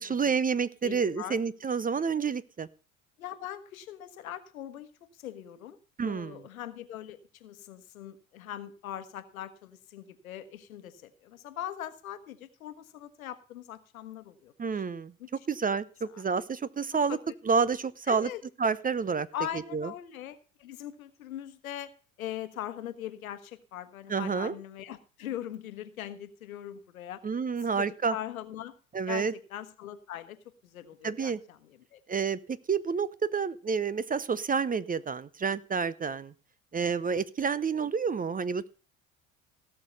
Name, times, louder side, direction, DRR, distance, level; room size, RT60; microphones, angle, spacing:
voice 1, 0.0-2.7 6.0-6.4 14.6-15.1 15.5-17.2 17.5-18.3 18.6-19.3 19.7-19.9 24.1-24.6 27.2-28.1 28.9-29.3 31.0-31.4 32.1-36.3 36.7-38.7, right 5 dB, 20° right, 19 dB, 0.7 m, -29 dB
voice 2, 0.8-1.4 3.2-5.8 6.0-15.3 16.1-16.2 16.9-17.2 18.1-18.4 19.3-21.9 22.2-27.2 27.7-28.7 29.1-32.0, left 11 dB, 85° left, 12 dB, 1.2 m, -41 dB
17.5 x 6.7 x 5.5 m, 0.38 s
hypercardioid pair, 65°, 41 cm